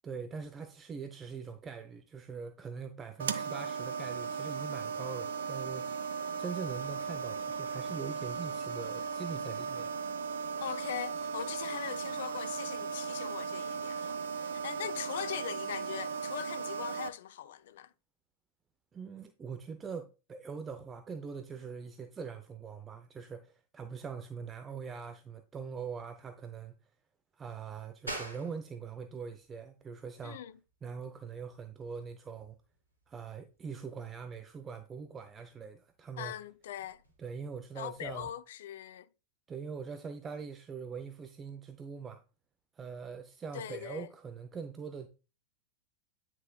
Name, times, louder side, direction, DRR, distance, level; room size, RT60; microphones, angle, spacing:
voice 1, 0.0-6.0 6.4-9.9 18.9-26.8 27.4-30.4 30.8-32.6 33.1-36.3 37.2-38.3 39.5-42.2 42.8-45.1, right 6 dB, 20° right, 0.6 m, -42 dB
sound 1, 3.2-17.1, right 5 dB, 65° right, 0.6 m, -37 dB
voice 2, 10.6-17.9 30.2-30.5 36.2-37.0 37.8-39.1 43.5-44.1, left 11 dB, 60° left, 0.5 m, -41 dB
sound 2, 28.1-38.3, right 1 dB, 85° left, 2.9 m, -50 dB
9.4 x 6.0 x 2.3 m
figure-of-eight pair, 90°, 0 cm